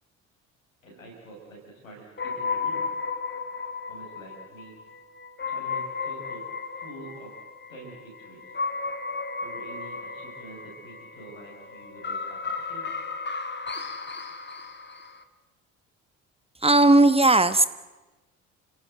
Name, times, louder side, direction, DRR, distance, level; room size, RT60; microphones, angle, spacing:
voice 1, 0.8-2.9 3.9-4.8 5.5-6.5 6.7-7.3 7.7-8.5 9.4-12.4 12.7-12.9, right 2 dB, 85° left, -2 dB, 7.0 m, -46 dB
sound 1, 2.2-15.2, left 4 dB, 25° left, 2.2 m, -34 dB
voice 2, 16.6-17.6, right 2 dB, 15° right, 12 dB, 1.3 m, -17 dB
29.5 x 17.0 x 8.0 m, 1.1 s
figure-of-eight pair, 50°, 39 cm